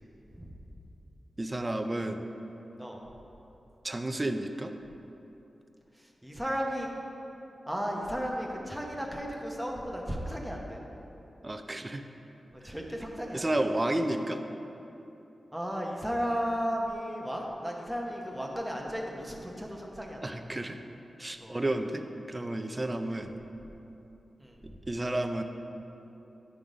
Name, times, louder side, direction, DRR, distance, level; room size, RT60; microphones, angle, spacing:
voice 1, 1.4-2.2 3.8-4.7 11.4-12.0 12.6-12.7 13.3-14.4 20.2-20.8 21.2-22.0 22.3-23.4 24.9-25.4, right 1 dB, 25° right, 6 dB, 0.4 m, -31 dB
voice 2, 6.0-6.9 7.7-10.8 12.6-13.4 15.5-20.2 21.4-21.6 24.4-24.6, equal, ahead, -1 dB, 1.0 m, -34 dB
9.4 x 3.6 x 4.9 m, 3.0 s
cardioid pair, 70°, 0 cm